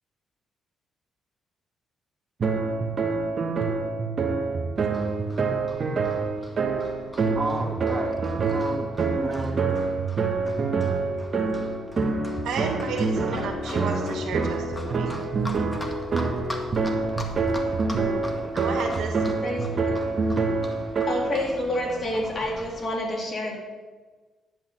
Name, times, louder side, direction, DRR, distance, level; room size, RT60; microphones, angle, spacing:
sound 1, 2.4-21.5, right 4 dB, 45° right, 1.7 m, -26 dB
Livestock farm animals working animals, 4.8-22.9, left 1 dB, 15° left, 1.9 m, -41 dB
voice 1, 7.3-9.7, right 2 dB, 25° right, -1 dB, 2.5 m, -33 dB
voice 2, 12.4-15.1 18.5-19.1, right 5 dB, 80° right, 2 dB, 2.1 m, -32 dB
voice 3, 13.3-14.0 15.1-15.2 19.4-20.0 21.1-23.6, left 1 dB, 45° left, -3 dB, 3.8 m, -29 dB
11.0 x 5.5 x 8.3 m, 1.3 s
cardioid pair, 90°, 0 cm